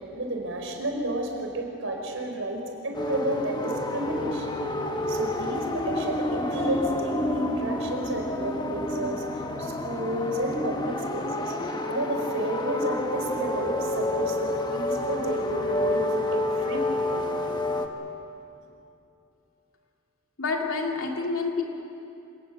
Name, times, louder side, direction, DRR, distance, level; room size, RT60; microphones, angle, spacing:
voice 1, 0.0-4.5 5.1-9.2 9.6-11.6 11.9-17.3, right 1 dB, 75° right, 2 dB, 4.4 m, -31 dB
sound 1, 2.9-17.9, left 1 dB, 20° left, 1.2 m, -29 dB
voice 2, 20.4-21.6, left 4 dB, 85° left, 1 dB, 3.0 m, -28 dB
27.0 x 19.0 x 8.0 m, 2.7 s
head